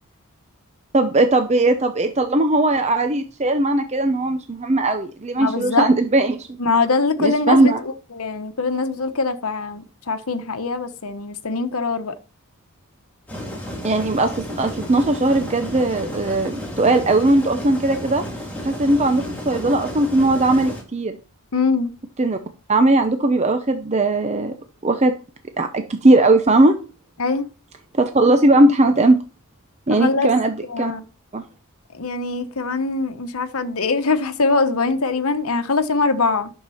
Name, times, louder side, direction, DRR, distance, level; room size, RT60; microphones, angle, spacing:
voice 1, 0.9-6.6 7.2-7.8 13.8-18.2 18.6-21.2 22.2-22.4 22.7-24.5 24.8-25.1 25.6-26.7 27.9-29.2 29.9-30.9 31.3-31.4, right 2 dB, 30° right, 0.7 m, -18 dB
voice 2, 5.4-5.8 6.6-12.1 21.5-21.9 27.2-27.5 29.9-30.3 30.7-31.0 31.9-36.5, left 3 dB, 75° left, 1.0 m, -22 dB
sound 1, 13.3-20.8, equal, 5° left, 2.6 m, -32 dB
10.0 x 6.6 x 4.2 m
head